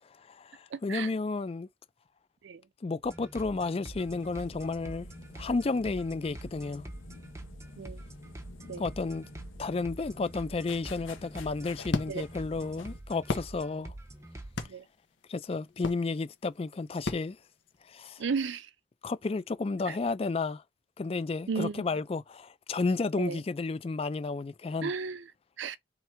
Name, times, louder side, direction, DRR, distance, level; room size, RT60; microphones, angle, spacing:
voice 1, 0.2-1.7 2.8-5.1 5.3-6.9 8.8-9.3 9.6-13.9 15.3-17.4 17.9-18.2 19.0-20.6 21.0-24.9, left 3 dB, 30° left, 0.3 m, -32 dB
voice 2, 0.7-1.1 2.4-2.6 7.8-8.0 8.7-8.8 12.1-12.2 14.7-14.8 18.2-18.7 19.9-20.0 21.5-21.8 23.2-23.4 24.8-25.2 25.6-25.8, right 5 dB, 70° right, 0.5 m, -34 dB
sound 1, 3.0-14.7, right 1 dB, 15° right, 0.7 m, -46 dB
sound 2, 3.9-13.0, left 3 dB, 85° left, 0.8 m, -50 dB
sound 3, 11.2-18.1, left 2 dB, 65° left, 1.1 m, -39 dB
3.5 x 3.4 x 4.4 m
head